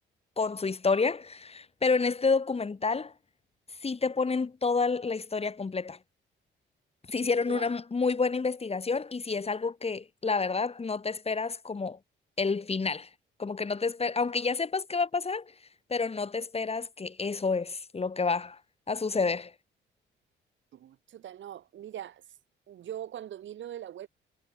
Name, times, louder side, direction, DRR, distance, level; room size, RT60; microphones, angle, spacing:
voice 1, 0.4-3.1 3.8-6.0 7.1-12.0 12.4-13.1 13.4-15.5 15.9-18.6 18.9-19.5, left 4 dB, 30° left, 7.0 m, -29 dB
voice 2, 20.7-22.2 22.7-24.1, right 11 dB, 70° right, 7.3 m, -41 dB
cardioid pair, 90°, 20 cm